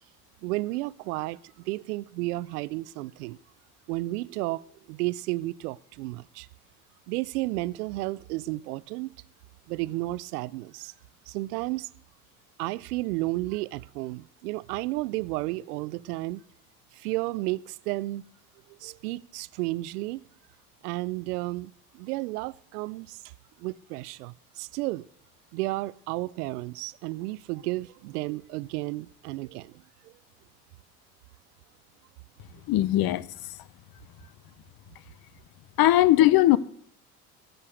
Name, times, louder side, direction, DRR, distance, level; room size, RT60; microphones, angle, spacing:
voice 1, 0.4-3.4 3.9-6.5 7.1-9.1 9.7-10.9 11.3-11.9 12.6-16.4 16.9-18.2 18.7-20.2 20.8-23.2 23.6-25.1 25.5-30.1, right 20 dB, 80° right, 0.6 m, -32 dB
voice 2, 32.7-33.3 35.8-36.6, left 15 dB, 50° left, 0.8 m, -19 dB
14.0 x 6.7 x 7.9 m
hypercardioid pair, 70°, 45 cm